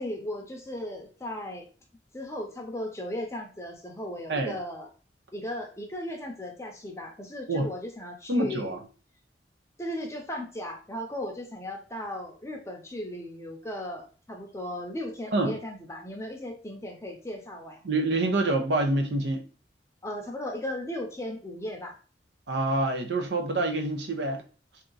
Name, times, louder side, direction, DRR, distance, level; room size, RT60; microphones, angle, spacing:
voice 1, 0.0-1.7 2.1-4.9 5.3-8.7 9.8-17.8 20.0-22.0, left 1 dB, 15° left, 0.6 m, -36 dB
voice 2, 8.3-8.8 15.3-15.6 17.8-19.4 22.5-24.4, right 2 dB, 75° right, 0.6 m, -26 dB
2.8 x 2.4 x 3.8 m
head